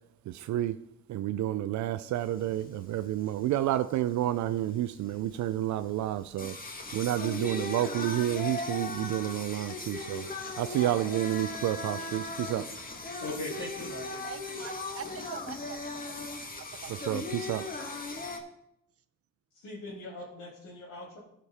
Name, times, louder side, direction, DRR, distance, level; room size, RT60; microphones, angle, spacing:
voice 1, 0.3-0.8 1.1-6.6 6.9-10.3 10.6-12.7 17.1-17.7, right 13 dB, 70° right, 0.4 m, -30 dB
Singing, 2.2-18.4, left 3 dB, 30° left, 1.5 m, -38 dB
voice 2, 13.2-14.3 19.5-21.2, left 2 dB, 80° left, 3.2 m, -40 dB
voice 3, 14.2-17.1 17.8-18.0, right 9 dB, 50° right, 0.8 m, -45 dB
14.0 x 5.2 x 4.2 m
cardioid pair, 90°, 30 cm